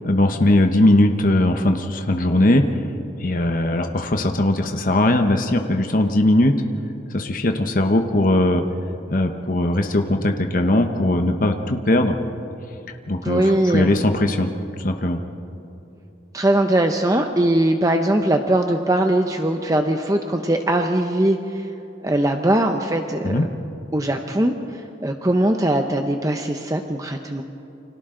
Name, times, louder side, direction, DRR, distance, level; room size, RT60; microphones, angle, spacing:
voice 1, 0.0-2.8 3.2-6.6 7.1-8.6 9.1-12.2 12.9-14.5 14.8-15.2 23.2-23.4, left 1 dB, 45° left, 5 dB, 1.0 m, -19 dB
voice 2, 13.2-14.0 16.3-21.7 22.0-23.5 23.9-27.4, right 1 dB, 20° right, 4 dB, 0.8 m, -20 dB
29.5 x 25.5 x 3.9 m, 3.0 s
head